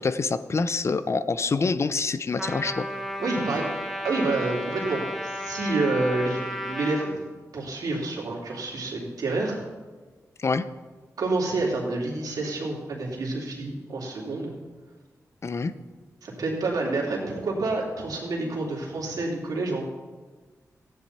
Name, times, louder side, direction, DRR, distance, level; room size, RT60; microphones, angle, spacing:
voice 1, 0.0-2.9 10.4-10.6 15.4-15.7, left 4 dB, 50° left, 13 dB, 0.6 m, -26 dB
Trumpet, 2.4-7.1, equal, ahead, 1.7 m, -33 dB
voice 2, 3.2-3.7 4.0-7.2 7.5-9.6 11.2-14.5 16.2-19.9, right 2 dB, 85° right, -2 dB, 3.2 m, -28 dB
15.0 x 10.0 x 4.3 m, 1.4 s
cardioid pair, 70°, 6 cm